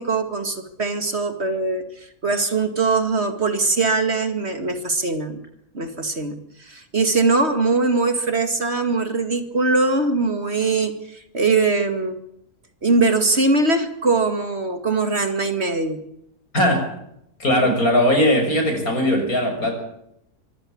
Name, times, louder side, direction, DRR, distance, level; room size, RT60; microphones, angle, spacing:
voice 1, 0.0-5.4 5.7-12.2 12.8-16.0 17.6-17.8, right 3 dB, 45° right, 8 dB, 2.5 m, -21 dB
voice 2, 16.5-16.9 17.4-19.7, left 1 dB, 70° left, 5 dB, 7.2 m, -19 dB
24.5 x 16.0 x 8.7 m, 0.75 s
omnidirectional pair, 1.6 m